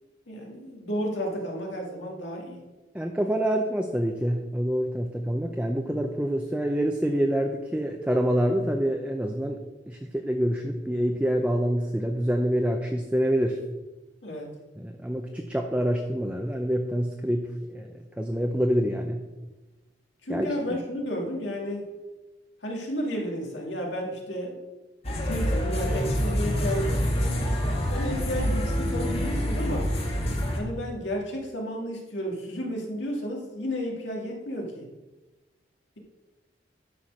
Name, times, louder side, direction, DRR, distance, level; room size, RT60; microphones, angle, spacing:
voice 1, 0.3-2.6 14.2-14.5 20.2-21.9 22.6-24.6 25.2-27.0 27.9-29.9 30.5-34.9, equal, 85° left, 0 dB, 2.2 m, -32 dB
voice 2, 2.9-9.6 9.9-13.6 14.8-17.9 18.2-19.2 20.3-20.5, equal, 5° right, 3 dB, 0.6 m, -26 dB
sound 1, 25.0-30.6, equal, 35° left, 1.6 m, -26 dB
11.5 x 4.5 x 6.4 m, 1.1 s
head